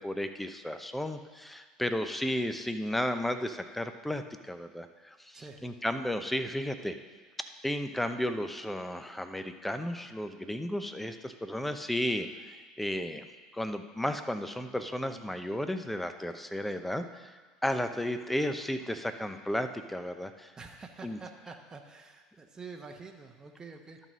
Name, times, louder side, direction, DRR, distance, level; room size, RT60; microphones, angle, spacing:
voice 1, 0.0-7.0 7.6-13.3 13.5-17.3 17.6-20.5 21.0-21.2, left 1 dB, 5° left, 9 dB, 0.7 m, -33 dB
voice 2, 20.6-24.0, right 4 dB, 20° right, 3 dB, 0.9 m, -47 dB
12.0 x 4.1 x 6.2 m, 1.4 s
hypercardioid pair, 80°, 3 cm